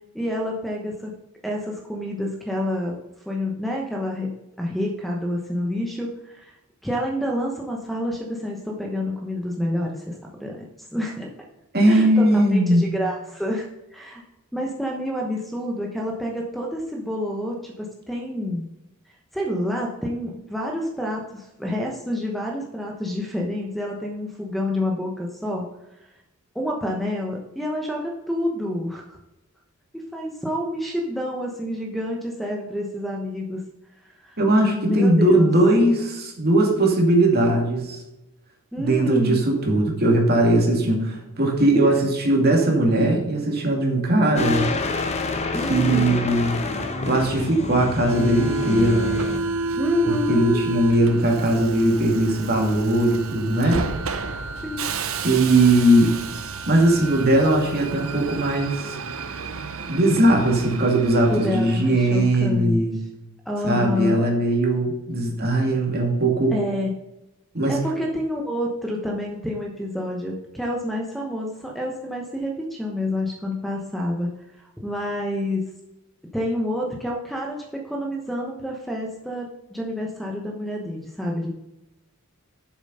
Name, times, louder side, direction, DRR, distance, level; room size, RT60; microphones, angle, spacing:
voice 1, 0.1-1.1 1.4-2.9 3.3-6.6 6.8-11.3 11.9-14.2 14.5-18.7 19.3-25.7 26.0-26.1 26.5-29.2 29.9-33.6 34.0-34.4 34.8-35.5 38.7-39.4 41.8-42.0 45.5-46.2 49.7-50.6 54.6-54.9 61.3-63.1 63.5-64.2 66.5-66.9 67.7-75.7 76.3-81.5, left 1 dB, ahead, 0 dB, 0.9 m, -28 dB
voice 2, 11.7-12.8 34.4-38.0 38.8-44.7 45.7-46.6 47.1-49.2 50.0-53.8 55.2-56.1 56.7-59.0 59.9-62.9 63.6-66.6 67.5-67.7, right 1 dB, 45° right, 1 dB, 2.4 m, -19 dB
sound 1, 44.3-49.4, left 3 dB, 30° left, 0.9 m, -27 dB
Subway metro underground, 48.1-62.4, right 3 dB, 65° right, 0.8 m, -30 dB
7.7 x 7.0 x 5.5 m, 0.94 s
head